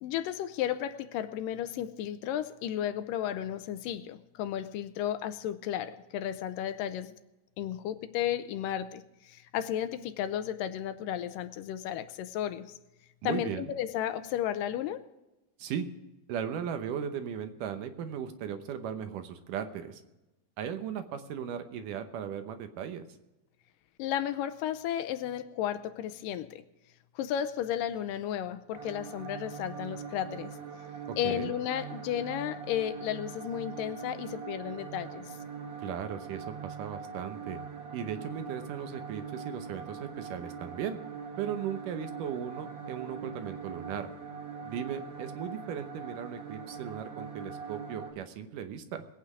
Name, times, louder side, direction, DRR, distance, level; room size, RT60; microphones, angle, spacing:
voice 1, 0.0-7.1 7.6-12.8 13.2-15.0 24.0-26.6 27.2-30.6 31.2-35.4, left 10 dB, 80° left, 2.3 m, -33 dB
voice 2, 13.2-13.7 15.6-15.9 16.3-20.0 20.6-23.0 31.1-31.5 35.8-37.6 37.9-41.0 41.4-44.1 44.6-49.1, right 8 dB, 75° right, 2.4 m, -37 dB
sound 1, 28.7-48.1, right 6 dB, 40° right, 2.1 m, -42 dB
21.5 x 8.7 x 4.9 m
omnidirectional pair, 4.0 m